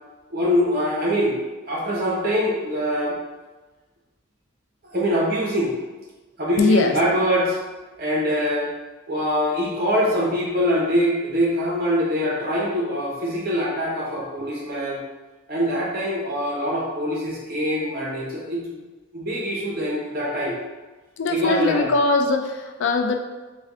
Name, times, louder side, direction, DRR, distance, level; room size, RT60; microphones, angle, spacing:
voice 1, 0.3-1.4 1.7-3.2 4.8-5.7 6.4-7.6 8.0-8.7 9.1-15.0 15.5-18.8 19.1-20.6 21.3-21.9, equal, 45° right, -3 dB, 0.8 m, -23 dB
voice 2, 6.6-7.0 21.2-23.2, left 3 dB, 60° left, 4 dB, 0.3 m, -21 dB
3.4 x 2.2 x 3.5 m, 1.2 s
head